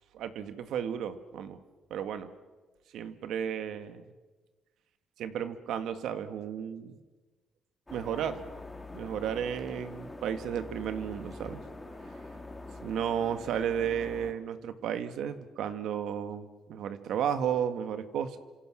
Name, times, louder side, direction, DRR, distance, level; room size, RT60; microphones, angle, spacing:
voice 1, 0.1-1.6 1.9-2.3 2.9-4.0 5.2-7.0 7.9-8.4 8.9-11.6 12.8-18.4, right 8 dB, 80° right, 9 dB, 1.7 m, -33 dB
sound 1, 7.9-14.3, left 2 dB, 15° left, 3.4 m, -44 dB
28.0 x 26.0 x 6.3 m, 1.3 s
cardioid pair, 90°, 0 cm